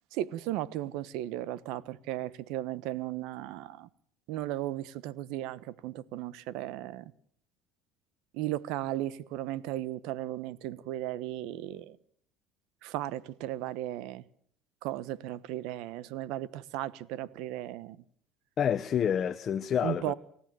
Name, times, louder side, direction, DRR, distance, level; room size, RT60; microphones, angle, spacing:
voice 1, 0.1-3.9 4.3-7.1 8.3-12.0 12.8-14.2 14.8-18.0 19.8-20.1, right 14 dB, 75° right, 1.1 m, -36 dB
voice 2, 18.6-20.1, left 8 dB, 40° left, 0.9 m, -28 dB
29.0 x 14.5 x 7.7 m
cardioid pair, 125°, 0 cm